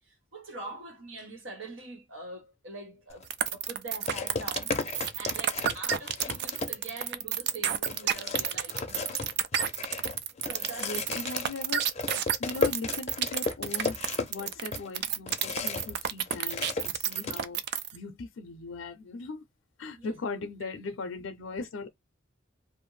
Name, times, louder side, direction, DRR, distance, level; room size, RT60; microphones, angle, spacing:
voice 1, 0.0-9.0 10.4-11.2 20.0-20.1 20.6-20.7, right 2 dB, 85° right, 1.1 m, -44 dB
sound 1, 3.1-3.3 4.1-7.1 7.5-7.6 7.9-16.0 16.3-17.4, left 4 dB, 35° left, 0.5 m, -35 dB
sound 2, 3.3-18.0, right 9 dB, 60° right, 0.4 m, -30 dB
voice 2, 10.8-11.9 12.4-19.4 19.8-21.9, left 3 dB, 85° left, 0.5 m, -39 dB
2.5 x 2.0 x 3.1 m
head